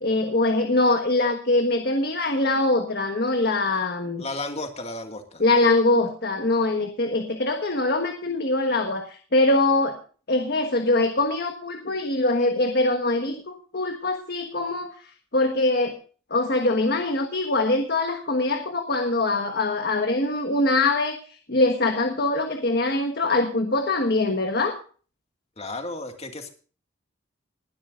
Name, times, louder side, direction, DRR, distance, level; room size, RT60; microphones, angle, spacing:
voice 1, 0.0-4.2 5.4-10.0 10.3-16.0 16.3-24.8, left 2 dB, 55° left, 5 dB, 1.4 m, -23 dB
voice 2, 4.2-5.4 25.6-26.5, left 2 dB, 35° left, 5 dB, 2.0 m, -33 dB
21.0 x 12.0 x 2.5 m, 0.39 s
head